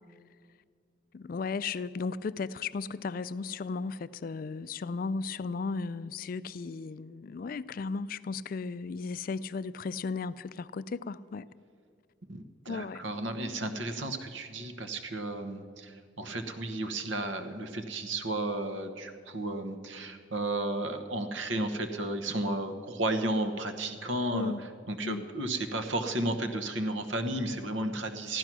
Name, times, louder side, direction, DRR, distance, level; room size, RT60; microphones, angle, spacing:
voice 1, 1.1-11.4 12.7-13.0 24.3-24.6 25.0-25.3, left 4 dB, 50° left, 16 dB, 0.3 m, -35 dB
voice 2, 12.3-24.5 24.9-28.4, right 1 dB, 80° right, 8 dB, 1.1 m, -33 dB
14.5 x 12.0 x 6.1 m, 2.2 s
head